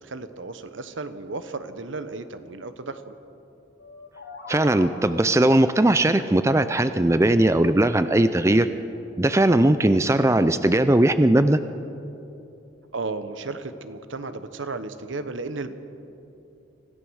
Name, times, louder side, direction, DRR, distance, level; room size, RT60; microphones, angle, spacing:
voice 1, 0.0-3.1 12.9-15.7, right 3 dB, 75° right, 10 dB, 1.1 m, -34 dB
sound 1, 3.8-5.6, left 3 dB, 90° left, 2.8 m, -42 dB
voice 2, 4.5-8.7 9.2-11.6, right 1 dB, 15° right, 11 dB, 0.5 m, -19 dB
25.0 x 16.0 x 6.4 m, 2.8 s
head